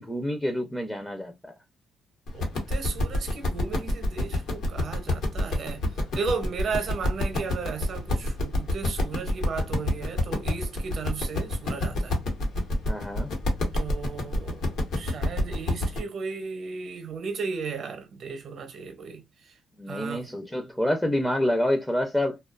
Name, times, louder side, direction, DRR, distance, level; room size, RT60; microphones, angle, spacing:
voice 1, 0.0-1.5 12.9-13.3 19.8-22.4, left 1 dB, 10° left, 0.5 m, -27 dB
sound 1, 2.3-16.0, left 1 dB, 80° left, 1.0 m, -28 dB
voice 2, 2.3-5.8 6.1-12.2 13.7-19.2 19.9-20.3, right 5 dB, 60° right, 0.7 m, -35 dB
2.4 x 2.3 x 2.3 m
cardioid pair, 90°, 0 cm